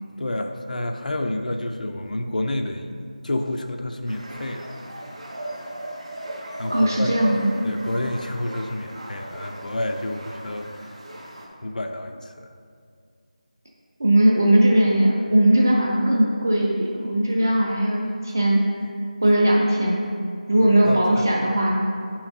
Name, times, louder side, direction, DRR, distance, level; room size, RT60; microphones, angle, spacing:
voice 1, 0.2-2.9 3.2-4.7 6.6-7.1 7.6-11.0 11.6-12.5 20.5-21.3, left 1 dB, 90° left, 4 dB, 0.5 m, -29 dB
sound 1, 4.1-11.5, right 1 dB, 55° right, 1.1 m, -37 dB
voice 2, 6.7-7.5 14.0-18.6 19.2-20.0 20.5-21.8, right 1 dB, 25° right, -2 dB, 0.4 m, -19 dB
8.4 x 5.7 x 2.7 m, 2.3 s
figure-of-eight pair, 180°, 4 cm